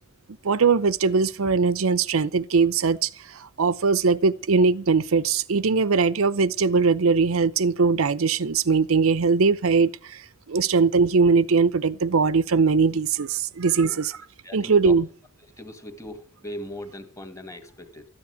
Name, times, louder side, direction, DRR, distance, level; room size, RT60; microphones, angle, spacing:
voice 1, 0.4-10.2 10.5-14.1 14.5-15.1, right 4 dB, 85° right, 0.7 m, -21 dB
voice 2, 14.4-15.0 15.6-18.1, left 1 dB, 15° left, 1.8 m, -39 dB
13.5 x 9.7 x 8.0 m
head